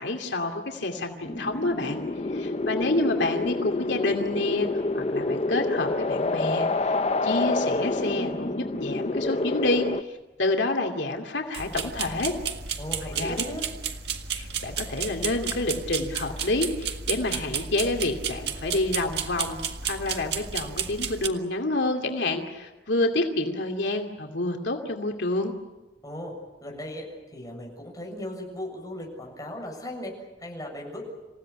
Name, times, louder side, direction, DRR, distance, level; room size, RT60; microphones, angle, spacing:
voice 1, 0.0-2.0 2.3-4.7 4.9-6.9 7.2-9.9 10.4-12.3 13.1-13.4 14.3-25.5, left 2 dB, 85° left, 3 dB, 2.5 m, -28 dB
sound 1, 1.2-10.0, left 2 dB, 35° left, 0.8 m, -28 dB
sound 2, 11.5-21.3, right 7 dB, 65° right, 1.8 m, -32 dB
voice 2, 12.8-13.6 26.0-26.3 26.6-30.1 30.4-31.0, left 1 dB, 20° left, 0 dB, 7.4 m, -37 dB
28.0 x 16.5 x 10.0 m, 1.1 s
head